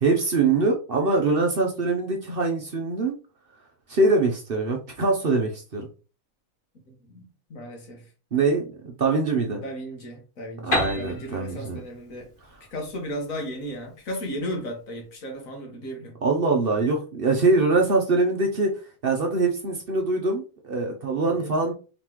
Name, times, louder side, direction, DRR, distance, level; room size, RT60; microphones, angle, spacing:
voice 1, 0.0-3.2 3.9-5.9 8.3-9.6 10.6-11.8 16.2-18.7 19.0-21.7, right 3 dB, 50° right, 0.8 m, -23 dB
voice 2, 6.9-7.2 7.5-8.0 9.6-12.3 12.7-16.2 21.2-21.6, equal, 70° left, 1.8 m, -35 dB
Piano, 10.7-14.4, left 1 dB, 40° left, 1.4 m, -32 dB
4.0 x 3.8 x 3.0 m
omnidirectional pair, 1.5 m